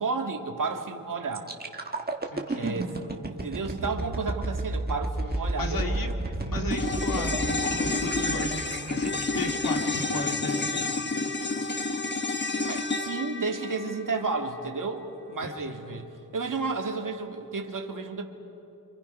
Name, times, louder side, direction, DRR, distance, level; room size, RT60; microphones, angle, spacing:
voice 1, 0.0-1.5 2.5-3.0 3.3-6.7 12.7-18.2, right 4 dB, 65° right, 3 dB, 2.0 m, -32 dB
sound 1, 1.3-11.2 11.6-11.8, right 2 dB, 25° right, 1.8 m, -32 dB
voice 2, 2.3-2.7 5.6-6.1 6.4-10.9 15.4-15.8, left 2 dB, 75° left, 3 dB, 2.2 m, -35 dB
sound 2, 6.7-15.2 15.5-15.6, left 3 dB, 30° left, 1.2 m, -30 dB
30.0 x 26.5 x 5.5 m, 3.0 s
wide cardioid pair, 130°, 34 cm